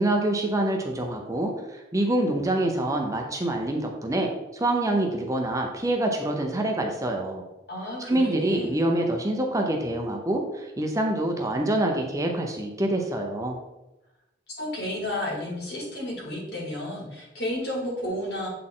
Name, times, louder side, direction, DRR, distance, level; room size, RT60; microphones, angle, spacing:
voice 1, 0.0-7.4 8.1-13.6, right 1 dB, 20° right, 2 dB, 0.7 m, -26 dB
voice 2, 7.7-8.8 14.6-18.5, left 1 dB, 65° left, -3 dB, 2.5 m, -32 dB
7.6 x 4.1 x 3.8 m, 0.97 s
head